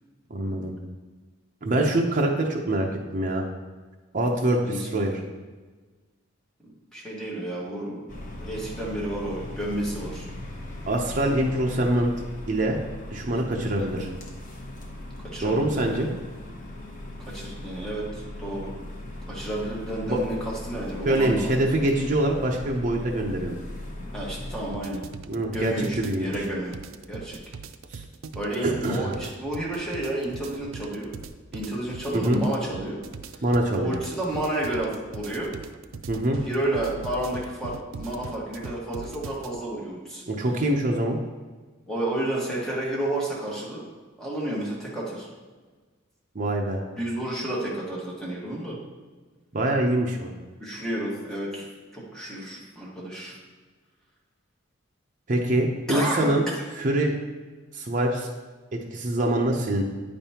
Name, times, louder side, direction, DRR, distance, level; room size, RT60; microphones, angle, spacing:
voice 1, 0.3-0.8 1.6-3.4 4.1-5.1 10.9-12.1 12.5-12.8 13.1-14.1 15.4-16.1 20.0-20.2 21.0-23.6 25.3-26.3 27.9-28.0 28.6-29.1 32.1-32.4 33.4-33.9 36.1-36.4 40.3-41.2 46.3-46.8 49.5-50.3 55.3-56.4 56.8-57.1 57.7-58.3 58.7-59.8, right 1 dB, 40° right, 0 dB, 0.7 m, -24 dB
voice 2, 4.6-5.0 6.9-8.1 8.4-10.3 13.8-14.0 15.3-15.9 17.2-18.7 19.3-21.7 24.1-25.0 25.5-26.8 27.1-27.4 28.3-31.1 31.5-33.0 33.3-33.4 33.8-35.5 36.4-40.2 41.9-43.8 44.2-45.3 47.0-48.8 50.6-51.7 51.9-53.3 55.9-56.5, right 1 dB, 5° left, -6 dB, 1.5 m, -31 dB
sound 1, 8.1-24.7, left 1 dB, 45° left, 1.0 m, -39 dB
sound 2, 24.7-39.6, right 4 dB, 75° right, 0.4 m, -40 dB
9.0 x 5.3 x 2.9 m, 1.4 s
head